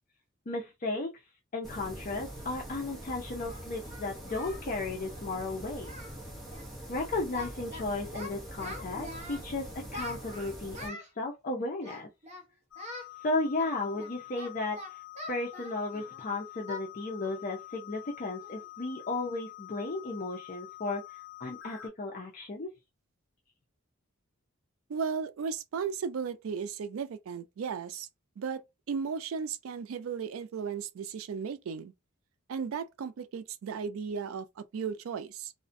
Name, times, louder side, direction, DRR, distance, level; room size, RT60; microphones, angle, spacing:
voice 1, 0.5-1.1 1.5-5.9 6.9-12.1 13.2-15.0 15.3-21.0 21.4-22.7, left 2 dB, 40° left, 0.5 m, -34 dB
sound 1, 1.6-10.9, equal, ahead, 0.8 m, -44 dB
Singing, 2.7-2.8 3.4-4.7 4.9-5.1 5.4-5.6 5.8-6.2 6.5-6.7 6.9-7.8 8.1-9.4 9.9-11.1 11.8-12.4 12.8-13.1 13.6-16.2 16.7-16.9 17.2-17.4 17.8-17.9 18.4-18.7, left 1 dB, 35° right, 0.7 m, -44 dB
sound 2, 12.7-21.9, left 16 dB, 55° left, 1.0 m, -47 dB
voice 2, 24.9-28.1 28.4-31.9 32.5-35.5, right 6 dB, 75° right, 0.4 m, -35 dB
2.4 x 2.1 x 2.5 m
head